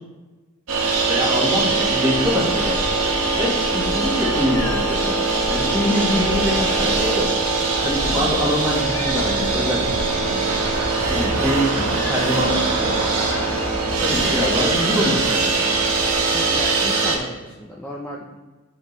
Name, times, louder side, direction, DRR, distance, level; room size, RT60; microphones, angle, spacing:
sound 1, 0.7-17.2, right 3 dB, 85° right, 1.1 m, -21 dB
voice 1, 1.1-2.9 3.3-5.2 5.5-7.3 7.8-9.9 11.1-13.0 14.0-15.7, left 1 dB, 15° right, -3 dB, 1.5 m, -24 dB
sound 2, 2.9-16.2, left 2 dB, 70° left, 1.0 m, -36 dB
voice 2, 16.3-18.4, left 1 dB, 5° left, -5 dB, 0.5 m, -34 dB
8.7 x 5.2 x 3.2 m, 1.2 s
head